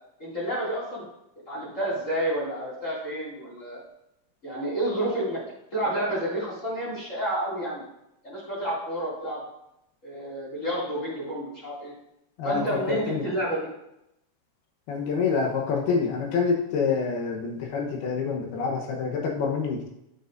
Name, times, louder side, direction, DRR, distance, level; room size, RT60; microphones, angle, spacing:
voice 1, 0.2-1.0 1.5-3.8 4.4-5.4 5.7-7.8 8.2-9.4 10.0-11.9 12.4-13.7, right 1 dB, 30° left, -7 dB, 1.4 m, -30 dB
voice 2, 12.4-13.2 14.9-19.9, left 5 dB, 70° left, 0 dB, 2.5 m, -27 dB
12.0 x 6.7 x 2.6 m, 0.81 s
omnidirectional pair, 5.5 m